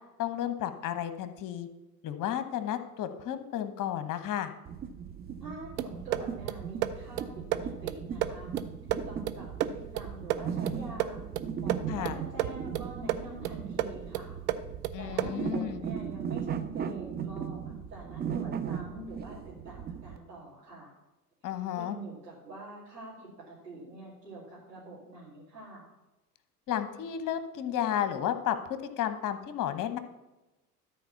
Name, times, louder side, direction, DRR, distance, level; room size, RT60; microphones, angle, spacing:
voice 1, 0.2-1.7 2.0-4.5 11.9-12.2 14.9-15.8 21.4-22.0 26.7-30.0, left 10 dB, 40° left, 10 dB, 1.2 m, -32 dB
sound 1, 4.6-20.2, right 7 dB, 20° right, 0.6 m, -37 dB
voice 2, 5.4-8.5 8.9-14.4 15.0-20.9 21.7-25.9, right 2 dB, 90° right, -10 dB, 3.2 m, -45 dB
sound 2, 5.8-15.5, right 12 dB, 55° right, 0.8 m, -34 dB
13.0 x 4.6 x 7.0 m, 1.0 s
figure-of-eight pair, 70°, 48 cm